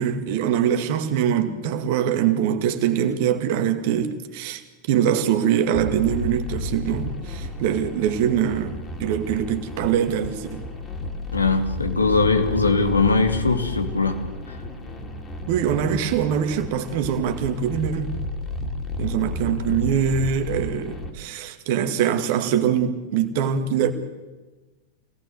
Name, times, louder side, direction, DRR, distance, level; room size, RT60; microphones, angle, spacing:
voice 1, 0.0-4.6 4.9-10.6 15.5-18.1 19.0-23.9, right 9 dB, 50° right, 2.1 m, -23 dB
sound 1, 5.7-21.1, left 1 dB, 20° left, 3.4 m, -32 dB
voice 2, 11.3-14.2 14.5-14.6, left 3 dB, 80° left, 2.4 m, -21 dB
26.0 x 18.5 x 8.0 m
figure-of-eight pair, 90°, 0 cm